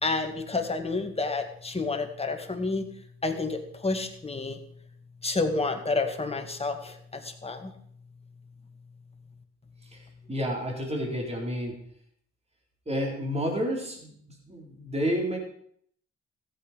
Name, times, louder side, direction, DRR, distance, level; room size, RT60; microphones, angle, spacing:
voice 1, 0.0-2.8 3.2-4.6 5.2-7.7, left 3 dB, 20° left, 5 dB, 2.0 m, -29 dB
voice 2, 9.9-11.8 12.9-14.2 14.5-15.4, equal, 20° right, 0 dB, 4.1 m, -30 dB
15.0 x 8.6 x 5.2 m, 0.65 s
cardioid pair, 90°, 30 cm